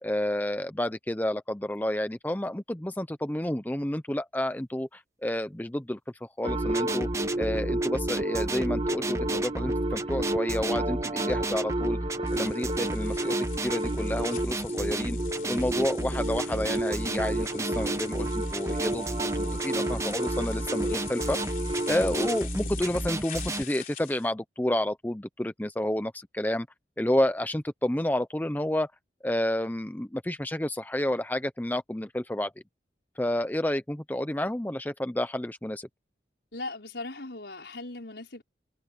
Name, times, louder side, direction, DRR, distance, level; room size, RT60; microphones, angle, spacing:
voice 1, 0.0-7.1 7.4-12.0 12.3-13.4 13.6-15.2 15.5-19.1 19.3-21.4 21.9-26.7 27.0-28.9 29.2-32.5 33.2-35.9, left 1 dB, 10° left, 0.6 m, -30 dB
sound 1, 6.4-22.4, right 1 dB, 30° right, 1.5 m, -31 dB
sound 2, 6.5-23.6, right 1 dB, 15° right, 0.9 m, -33 dB
sound 3, 12.3-24.3, left 7 dB, 45° left, 3.6 m, -44 dB
voice 2, 36.5-38.4, left 2 dB, 70° left, 5.1 m, -38 dB
head